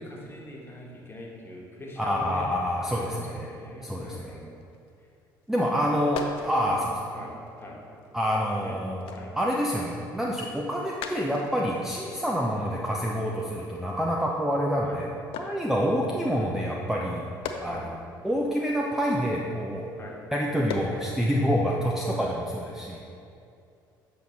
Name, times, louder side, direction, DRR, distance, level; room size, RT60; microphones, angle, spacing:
voice 1, 0.0-2.5 2.8-4.5 6.6-6.8 7.1-7.8 8.6-8.8 9.1-9.3 9.7-9.9 14.8-15.0 15.6-15.8 17.7-17.9 20.0-20.2, left 1 dB, 20° left, -2 dB, 1.5 m, -42 dB
voice 2, 2.0-3.5 3.8-4.4 5.5-6.8 8.1-9.1 9.4-15.1 15.4-17.3 17.6-18.0 18.2-19.9 20.3-23.0, equal, 5° right, -3 dB, 0.7 m, -27 dB
sound 1, 4.6-5.0 5.3-8.5 8.9-14.7 15.3-20.0 20.5-21.1 21.6-21.8, left 5 dB, 55° left, 0.6 m, -42 dB
6.9 x 6.5 x 3.1 m, 2.5 s
figure-of-eight pair, 55°, 11 cm